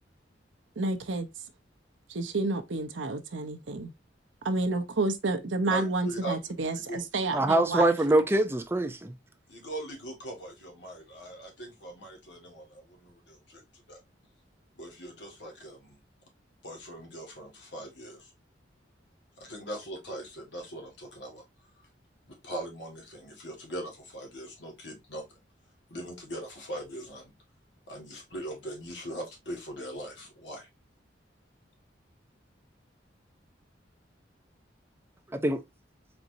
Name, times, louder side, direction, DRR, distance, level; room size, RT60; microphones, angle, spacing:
voice 1, 0.8-1.3 2.1-3.9 4.4-8.0, right 2 dB, 85° right, 0.8 m, -30 dB
voice 2, 5.7-6.4 6.7-7.0 7.3-7.4 9.5-14.0 14.8-16.0 16.6-18.3 19.4-21.4 22.3-25.4 25.9-27.3 27.9-30.7, right 1 dB, 70° left, 1.8 m, -40 dB
voice 3, 7.3-9.1 35.3-35.6, right 2 dB, 15° right, 0.5 m, -24 dB
4.3 x 4.0 x 2.6 m
head